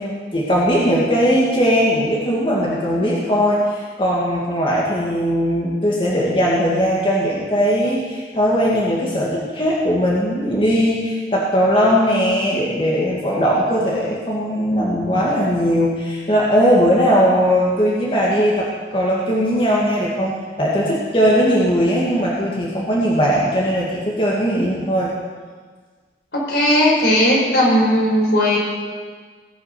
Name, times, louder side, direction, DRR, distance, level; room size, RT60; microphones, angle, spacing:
voice 1, 0.0-25.1, equal, 30° left, -6 dB, 1.9 m, -19 dB
voice 2, 26.3-28.6, left 1 dB, 75° left, -4 dB, 4.5 m, -16 dB
19.5 x 6.5 x 5.9 m, 1.5 s
head